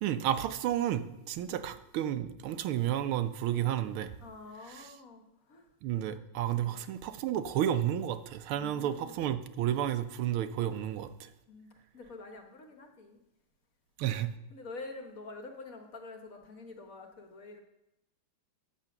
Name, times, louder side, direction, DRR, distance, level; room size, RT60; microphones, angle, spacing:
voice 1, 0.0-4.1 4.7-4.9 5.8-11.3 14.0-14.3, right 11 dB, 90° right, 10 dB, 1.6 m, -31 dB
voice 2, 4.2-5.7 6.5-6.7 8.5-9.1 11.5-11.7 11.9-13.2 14.5-17.6, left 3 dB, 45° left, 4 dB, 1.4 m, -47 dB
8.7 x 7.6 x 5.9 m, 0.91 s
omnidirectional pair, 2.3 m